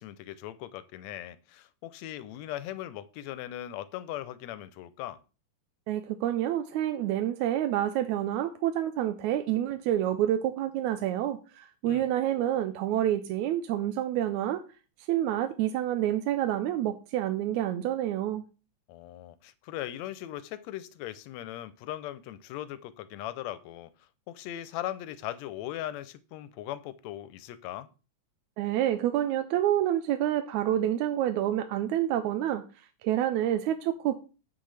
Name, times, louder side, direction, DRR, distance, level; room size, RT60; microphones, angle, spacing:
voice 1, 0.0-5.2 11.9-12.1 18.9-23.9 24.3-27.9, left 13 dB, 75° left, 1.8 m, -39 dB
voice 2, 5.9-14.6 15.1-18.4 28.6-32.7 33.0-34.2, right 12 dB, 85° right, 2.0 m, -28 dB
9.3 x 7.7 x 3.4 m
omnidirectional pair, 3.4 m